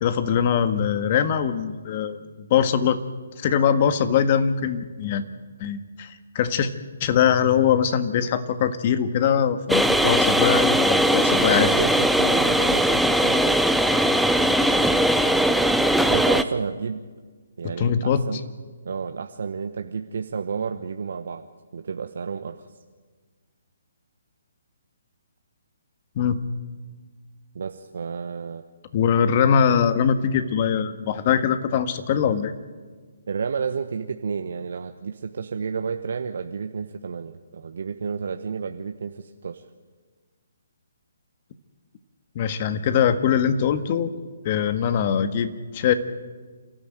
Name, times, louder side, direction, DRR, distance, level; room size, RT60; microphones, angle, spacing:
voice 1, 0.0-3.0 3.4-5.2 5.6-6.7 7.0-11.7 17.6-18.2 26.2-26.4 28.9-32.5 42.4-44.1 44.5-45.9, left 8 dB, 40° left, 10 dB, 1.6 m, -22 dB
sound 1, 9.7-16.4, equal, ahead, 0.8 m, -20 dB
voice 2, 11.3-13.6 16.1-17.0 17.6-18.4 18.8-21.4 21.7-22.6 27.5-28.6 33.3-39.6, right 6 dB, 65° right, 7 dB, 1.1 m, -31 dB
28.5 x 13.5 x 9.2 m, 1.5 s
hypercardioid pair, 145°, 0 cm